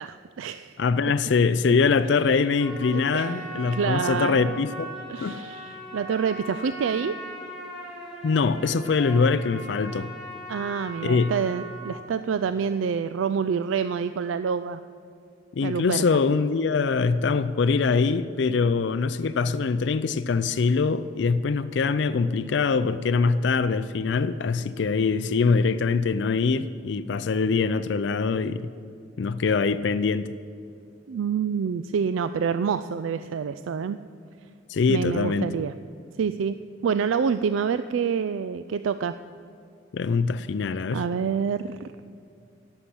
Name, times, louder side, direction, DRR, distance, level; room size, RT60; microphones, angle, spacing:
voice 1, 0.0-0.8 2.9-4.6 5.1-7.2 10.5-14.8 15.6-16.2 31.1-34.0 34.9-35.7 36.2-36.6 36.8-39.1 40.9-41.9, right 6 dB, 75° right, 12 dB, 0.3 m, -27 dB
voice 2, 0.8-4.9 5.2-5.4 8.2-10.1 11.0-11.3 15.5-28.7 29.2-30.3 34.7-35.5 39.9-41.0, left 4 dB, 60° left, 13 dB, 0.4 m, -23 dB
Trumpet, 2.6-12.1, equal, ahead, 2.4 m, -39 dB
11.5 x 7.2 x 9.8 m, 2.5 s
head